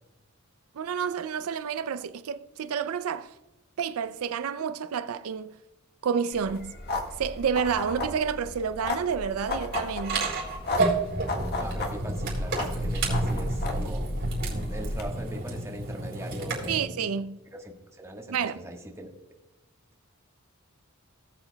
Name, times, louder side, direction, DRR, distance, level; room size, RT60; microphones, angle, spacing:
voice 1, 0.8-3.3 3.8-5.5 6.0-6.7 7.2-10.3 16.7-17.4 18.3-18.6, right 7 dB, 80° right, 0.4 m, -29 dB
sound 1, 6.3-15.0, left 1 dB, 50° left, 1.5 m, -33 dB
sound 2, 9.7-16.8, right 2 dB, 60° right, 3.8 m, -31 dB
voice 2, 11.6-14.1 14.7-17.0 17.5-17.7 18.0-19.1, right 1 dB, 15° right, 1.3 m, -40 dB
18.0 x 7.9 x 2.2 m
head